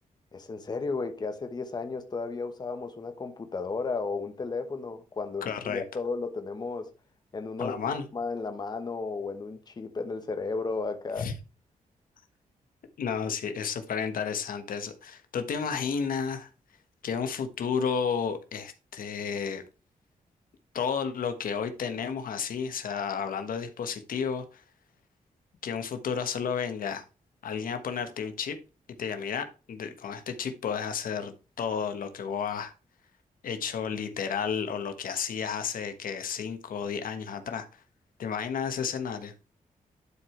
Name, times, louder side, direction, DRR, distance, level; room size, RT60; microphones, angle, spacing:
voice 1, 0.3-6.9 7.3-7.8 8.1-11.3, left 4 dB, 30° left, 1.1 m, -34 dB
voice 2, 5.4-5.8 7.6-8.1 11.2-11.3 13.0-16.5 17.0-19.6 20.7-24.6 25.6-27.0 27.4-28.6 29.0-32.7 33.4-37.8 38.2-39.3, left 6 dB, 75° left, 1.2 m, -32 dB
11.0 x 4.8 x 3.2 m
wide cardioid pair, 160°, 15 cm